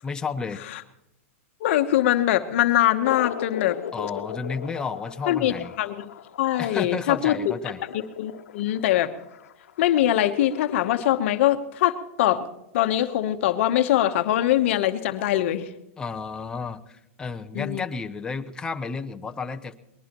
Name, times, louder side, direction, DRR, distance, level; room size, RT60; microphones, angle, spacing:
voice 1, 0.0-0.6 3.9-5.7 6.6-7.8 16.0-19.7, left 5 dB, 10° left, 7 dB, 0.7 m, -32 dB
voice 2, 1.6-3.8 5.3-6.1 6.4-7.4 8.2-9.1 9.8-12.5 12.7-15.7 17.5-17.8, left 13 dB, 60° left, 8 dB, 1.0 m, -22 dB
sound 1, 3.0-11.0, left 9 dB, 85° left, 1.0 m, -38 dB
22.5 x 20.5 x 3.0 m, 0.87 s
supercardioid pair, 150°, 8 cm